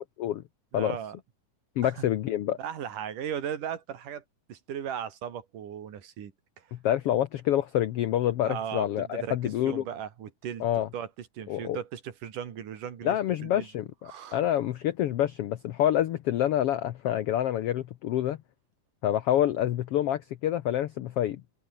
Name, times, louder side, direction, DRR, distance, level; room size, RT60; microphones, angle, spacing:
voice 1, 0.7-1.2 1.8-2.1 2.6-4.2 4.5-6.3 6.6-6.7 8.4-10.6 10.9-13.2 13.4-13.7 14.1-14.4, right 9 dB, 70° right, 3.7 m, -37 dB
voice 2, 1.8-2.6 6.7-9.8 10.6-10.9 11.5-11.8 13.0-18.4 19.0-21.4, left 12 dB, 85° left, 1.3 m, -27 dB
open air
omnidirectional pair, 3.8 m